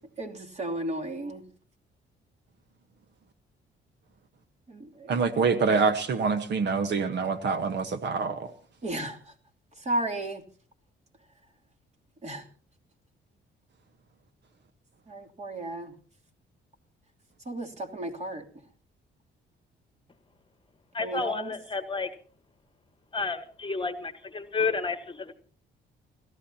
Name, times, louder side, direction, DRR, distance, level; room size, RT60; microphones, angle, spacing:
voice 1, 0.2-1.4 4.7-5.3 8.8-9.3 9.8-10.4 12.2-12.4 15.1-15.9 17.4-18.4 21.0-21.5, right 1 dB, 35° right, 3 dB, 3.0 m, -34 dB
voice 2, 5.1-8.5, right 5 dB, 60° right, 10 dB, 1.3 m, -26 dB
voice 3, 20.9-22.1 23.1-25.3, left 4 dB, 25° left, 12 dB, 1.3 m, -31 dB
29.0 x 14.0 x 2.9 m, 0.43 s
cardioid pair, 90°, 20 cm